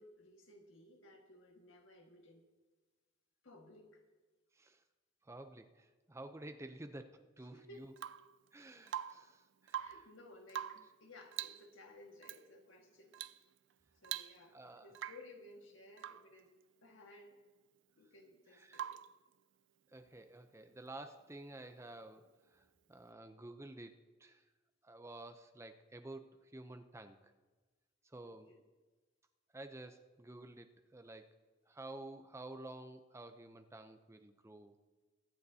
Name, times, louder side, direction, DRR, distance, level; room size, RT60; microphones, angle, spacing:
voice 1, 0.0-2.4 3.4-4.0 7.5-7.9 9.8-13.1 14.0-16.5 16.8-17.4 18.0-19.0 28.2-28.6, left 2 dB, 85° left, 2 dB, 1.8 m, -58 dB
voice 2, 4.5-4.8 5.2-7.9 8.5-10.0 14.5-14.9 18.5-18.8 19.9-24.4 24.8-27.3 28.0-28.5 29.5-31.3 31.7-34.7, right 2 dB, 15° right, 8 dB, 0.6 m, -51 dB
Rain / Water tap faucet / Drip, 8.0-8.3 8.9-9.3 9.6-10.1 10.5-10.9 11.3-11.7 12.2-12.4 13.1-13.4 13.7-13.8 14.0-14.6 14.9-15.3 16.0-16.3 18.7-19.2 21.1-21.2, right 11 dB, 65° right, 0.4 m, -44 dB
22.5 x 9.4 x 2.8 m, 1.3 s
head